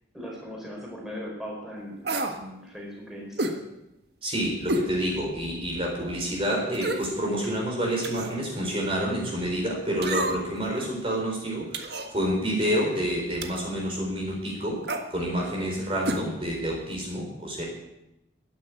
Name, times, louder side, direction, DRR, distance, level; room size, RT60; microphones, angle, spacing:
voice 1, 0.1-3.6, equal, ahead, -3 dB, 4.6 m, -39 dB
sound 1, 2.0-2.4 3.4-3.6 4.7-4.9 5.4-5.5 6.7-7.1 8.0-8.4 10.0-10.6 11.7-12.1 13.4-13.7 14.8-15.1 16.0-16.2 16.5-16.6, right 2 dB, 65° right, 1.6 m, -29 dB
voice 2, 4.2-14.8 15.1-17.6, equal, 30° right, -1 dB, 4.2 m, -28 dB
14.0 x 10.0 x 9.5 m, 0.88 s
head